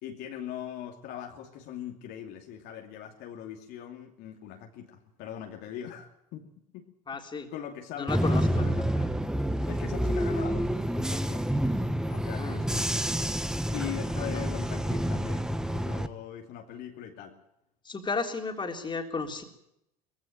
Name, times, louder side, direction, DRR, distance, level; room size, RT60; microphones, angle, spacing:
voice 1, 0.0-6.5 6.7-6.8 7.5-9.1 9.6-11.5 12.1-12.9 13.7-17.3, left 10 dB, 60° left, 2 dB, 2.7 m, -41 dB
voice 2, 7.1-7.5 8.0-8.7 12.3-12.6 14.2-14.4 17.9-19.4, left 4 dB, 25° left, 4 dB, 3.7 m, -33 dB
Bus / Engine, 8.1-16.1, equal, 5° right, 1.4 m, -28 dB
19.5 x 16.0 x 8.9 m, 0.81 s
hypercardioid pair, 85°, 19 cm